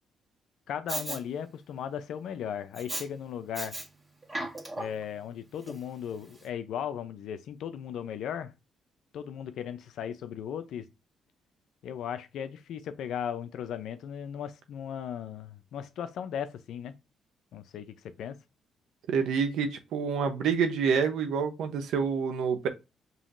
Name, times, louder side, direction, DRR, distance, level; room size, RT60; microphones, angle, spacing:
voice 1, 0.7-3.7 4.8-8.5 9.1-10.9 11.8-16.9 17.5-18.4, left 8 dB, 75° left, 0.6 m, -37 dB
Respiratory sounds, 0.9-1.2 2.8-3.1 3.5-3.9 4.2-5.0 5.7-5.8, right 1 dB, 25° right, 1.5 m, -35 dB
voice 2, 19.1-22.7, right 6 dB, 80° right, 0.7 m, -27 dB
5.5 x 3.0 x 2.6 m
cardioid pair, 90°, 0 cm